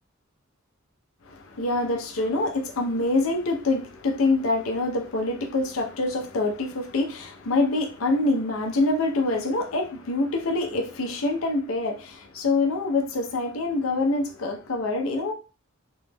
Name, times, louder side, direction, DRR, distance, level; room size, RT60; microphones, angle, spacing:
voice 1, 1.3-15.3, left 2 dB, 80° left, 0.6 m, -25 dB
3.0 x 2.1 x 3.3 m
head